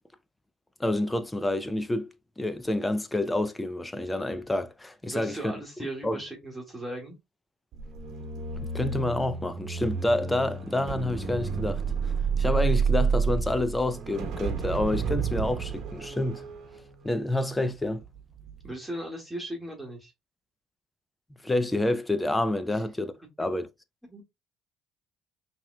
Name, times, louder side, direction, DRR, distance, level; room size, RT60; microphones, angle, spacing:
voice 1, 0.8-5.5 6.0-6.2 8.6-11.8 12.4-16.4 17.0-18.0 21.4-23.1 23.4-23.7, left 1 dB, 10° left, 0.6 m, -28 dB
voice 2, 5.0-7.2 18.6-20.1 22.7-22.8 24.1-24.2, right 1 dB, 10° right, 1.9 m, -37 dB
sound 1, 7.7-18.0 18.4-18.7, right 5 dB, 60° right, 1.0 m, -30 dB
5.5 x 2.9 x 2.3 m
supercardioid pair, 85°, 0 cm